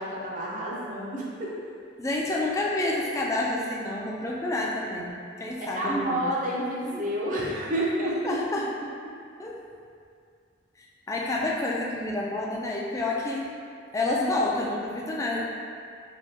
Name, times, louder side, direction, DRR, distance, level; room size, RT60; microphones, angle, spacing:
voice 1, 0.0-1.5 5.7-8.4, right 1 dB, 40° right, -4 dB, 0.6 m, -29 dB
voice 2, 2.0-6.3 6.8-7.1 8.0-8.7 9.4-9.6 10.8-13.5 13.9-15.4, left 2 dB, 15° left, -3 dB, 0.3 m, -29 dB
3.4 x 2.8 x 2.7 m, 2.3 s
head